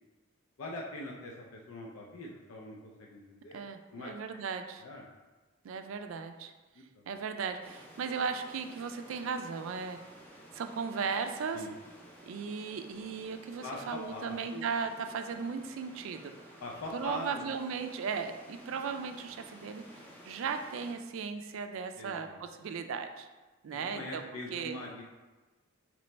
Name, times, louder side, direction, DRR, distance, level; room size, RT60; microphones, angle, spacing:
voice 1, 0.6-3.6 3.9-4.1 4.8-5.1 6.9-7.1 11.5-11.8 13.6-14.7 16.6-17.5 22.0-22.7 23.7-25.0, left 1 dB, 85° left, -2 dB, 0.5 m, -43 dB
voice 2, 3.5-4.8 5.6-6.5 7.1-10.0 10.5-11.6 12.2-16.3 16.9-23.3 23.6-24.2 24.5-24.8, right 5 dB, 65° right, 7 dB, 0.3 m, -36 dB
sound 1, 7.6-20.9, equal, 10° left, 0.5 m, -54 dB
4.0 x 3.0 x 3.2 m, 1.2 s
head